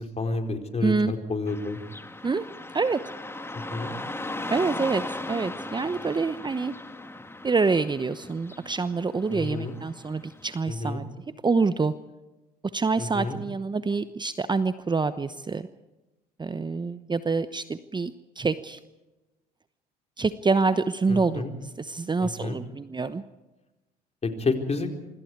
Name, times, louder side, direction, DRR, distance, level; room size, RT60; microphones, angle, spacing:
voice 1, 0.0-1.8 3.7-4.0 9.3-9.8 10.7-11.0 13.0-13.4 21.1-21.5 22.2-22.6 24.2-24.9, left 3 dB, 30° left, 4 dB, 4.5 m, -30 dB
voice 2, 0.8-1.1 2.2-2.4 2.7-3.0 4.5-6.8 7.4-11.0 11.4-11.9 12.7-15.7 16.4-18.8 20.2-21.5 21.8-23.2, right 4 dB, 20° right, 13 dB, 1.0 m, -26 dB
Car passing by / Traffic noise roadway noise, 1.5-10.5, left 2 dB, 10° left, 2.1 m, -38 dB
26.0 x 26.0 x 4.8 m, 1.1 s
hypercardioid pair, 60°, 21 cm